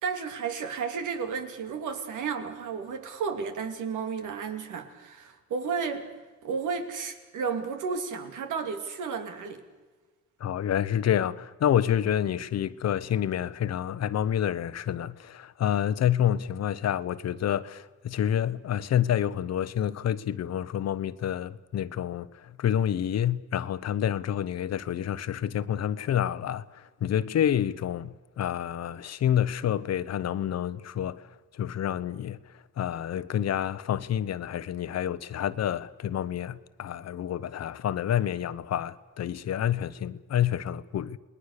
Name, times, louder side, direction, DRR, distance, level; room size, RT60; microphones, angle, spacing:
voice 1, 0.0-6.1 6.4-9.6, right 5 dB, 80° right, 2.8 m, -32 dB
voice 2, 10.4-31.3 31.5-32.4 32.8-41.2, left 10 dB, 55° left, 0.9 m, -28 dB
29.0 x 20.5 x 6.7 m
cardioid pair, 120°, 30 cm